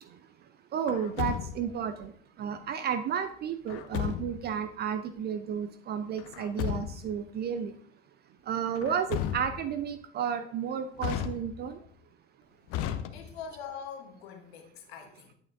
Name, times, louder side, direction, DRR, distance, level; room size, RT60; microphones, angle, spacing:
voice 1, 0.7-2.1 2.4-7.7 8.5-11.8, right 8 dB, 30° right, 10 dB, 0.5 m, -32 dB
Truck, 0.9-1.8 3.7-4.5 6.2-7.2 8.8-9.8 11.0-11.8 12.7-13.6, left 10 dB, 45° left, 0.6 m, -34 dB
voice 2, 13.1-15.3, left 7 dB, 65° left, 5 dB, 1.3 m, -43 dB
8.5 x 8.4 x 2.6 m, 0.63 s
figure-of-eight pair, 65°, 33 cm